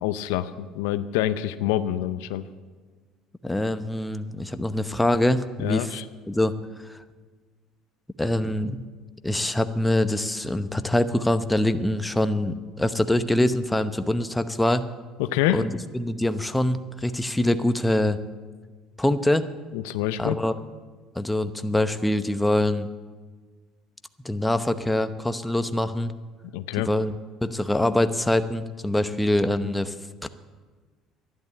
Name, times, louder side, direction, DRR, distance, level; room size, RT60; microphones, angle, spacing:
voice 1, 0.0-2.4 5.6-6.0 15.2-15.7 19.7-20.4 26.5-26.9, left 13 dB, 85° left, 12 dB, 0.5 m, -26 dB
voice 2, 3.4-5.9 6.3-6.5 8.2-8.8 9.2-14.9 15.5-15.7 15.9-18.2 19.0-19.5 20.2-20.5 21.1-22.9 24.2-26.1 26.9-27.1 27.4-29.9 30.2-30.3, left 1 dB, 10° left, 11 dB, 0.9 m, -24 dB
12.0 x 11.0 x 8.4 m, 1.4 s
supercardioid pair, 75°, 0 cm